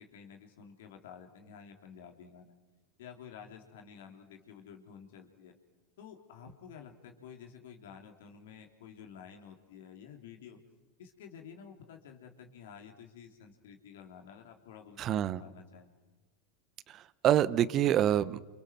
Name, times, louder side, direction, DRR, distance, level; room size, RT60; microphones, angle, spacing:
voice 1, 0.0-2.5 3.0-5.5 6.0-10.6 11.0-15.9, left 7 dB, 70° left, 4 dB, 3.4 m, -51 dB
voice 2, 15.0-15.4 16.9-18.4, right 11 dB, 40° right, 17 dB, 1.1 m, -27 dB
29.5 x 27.0 x 6.2 m, 1.2 s
hypercardioid pair, 90°, 0 cm